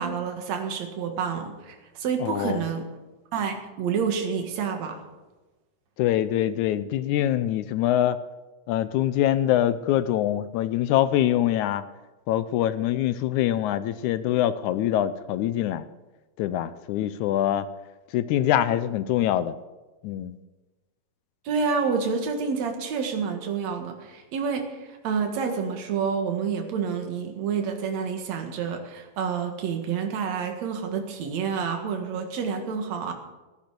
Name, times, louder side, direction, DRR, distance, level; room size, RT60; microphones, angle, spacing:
voice 1, 0.0-2.9 3.3-5.0 21.4-33.1, right 6 dB, 60° right, 4 dB, 2.8 m, -28 dB
voice 2, 2.2-2.6 6.0-8.2 8.7-11.8 12.3-15.9 16.4-17.7 18.1-19.6 20.0-20.4, left 12 dB, 75° left, 14 dB, 1.9 m, -24 dB
15.5 x 10.5 x 6.7 m, 1.2 s
omnidirectional pair, 3.8 m